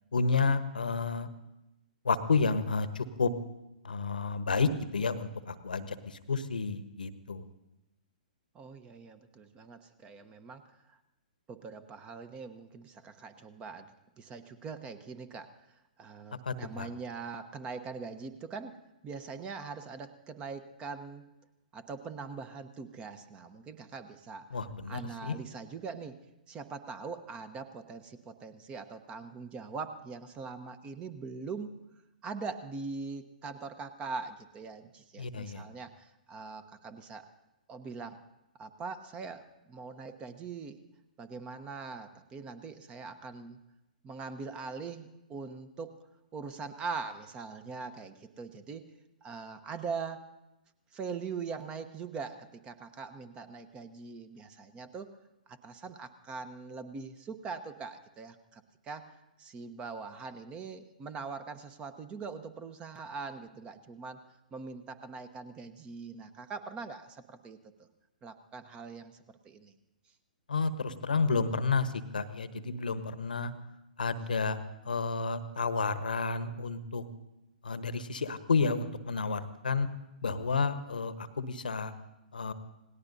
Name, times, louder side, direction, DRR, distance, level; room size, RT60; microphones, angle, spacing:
voice 1, 0.1-1.3 2.0-3.3 3.8-7.4 16.5-16.9 24.5-25.4 35.2-35.6 70.5-73.5 74.0-74.6 74.9-77.0 77.6-79.9 80.2-81.9 82.3-82.5, left 4 dB, 75° left, 12 dB, 1.1 m, -31 dB
voice 2, 8.5-11.0 11.5-18.8 19.0-21.3 21.7-26.2 26.5-31.7 32.2-37.3 37.7-38.2 38.6-40.8 41.2-43.6 44.0-45.9 46.3-48.9 49.2-50.3 50.9-55.1 55.5-64.2 64.5-67.9 68.2-69.7, right 5 dB, 20° right, 11 dB, 0.9 m, -42 dB
27.5 x 19.0 x 2.7 m, 0.94 s
figure-of-eight pair, 120°, 5 cm